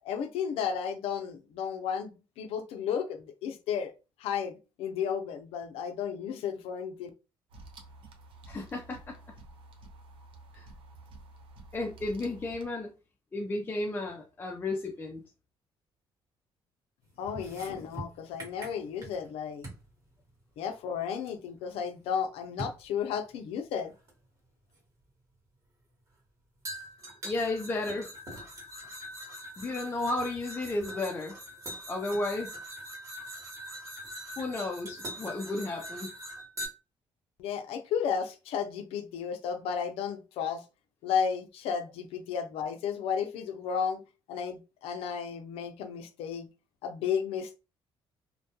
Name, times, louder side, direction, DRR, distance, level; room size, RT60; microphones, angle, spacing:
voice 1, 0.0-3.9 4.2-7.1 17.2-19.7 20.6-23.9 37.4-40.6 41.0-44.0 44.3-46.5 46.8-47.6, left 7 dB, 90° left, 0.4 m, -33 dB
sound 1, 7.5-12.7, right 2 dB, 65° right, 0.6 m, -51 dB
voice 2, 8.5-9.1 10.5-10.6 11.7-12.9 13.3-15.2 27.2-28.1 29.6-31.3 31.9-32.5 34.4-36.1, left 2 dB, 20° left, 0.4 m, -33 dB
sound 2, 17.3-19.3 19.6-19.9 21.3-21.4 22.6-22.8 24.1-24.2 26.7-36.7, equal, 35° right, 1.1 m, -42 dB
2.2 x 2.1 x 2.8 m
cardioid pair, 110°, 10 cm